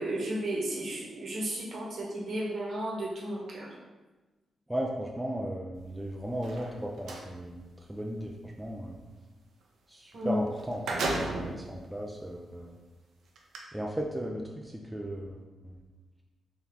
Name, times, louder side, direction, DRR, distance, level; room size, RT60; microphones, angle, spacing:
voice 1, 0.0-3.7 10.1-10.4, right 1 dB, 55° right, -3 dB, 1.1 m, -33 dB
voice 2, 4.7-9.0 9.9-10.8 11.2-12.7 13.7-15.7, right 1 dB, 5° right, 0 dB, 0.4 m, -36 dB
sound 1, 6.3-7.3 10.1-10.2 10.5-11.6 12.3-12.4 13.4-13.6, right 2 dB, 85° right, 0.6 m, -33 dB
3.8 x 2.9 x 3.5 m, 1.2 s
cardioid pair, 105°, 0 cm